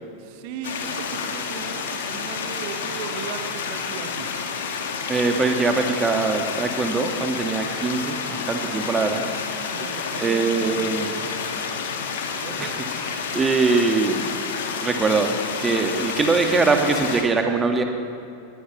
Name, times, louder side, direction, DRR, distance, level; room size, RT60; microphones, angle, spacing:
voice 1, 0.2-4.5 9.7-11.7 12.4-12.8, right 8 dB, 45° right, 8 dB, 1.3 m, -37 dB
sound 1, 0.6-17.2, left 5 dB, 60° left, 1.8 m, -29 dB
voice 2, 5.1-9.2 10.2-11.1 12.6-14.3 14.8-17.8, right 4 dB, 15° right, 4 dB, 1.8 m, -22 dB
20.0 x 19.5 x 3.2 m, 2.7 s
figure-of-eight pair, 90°, 0 cm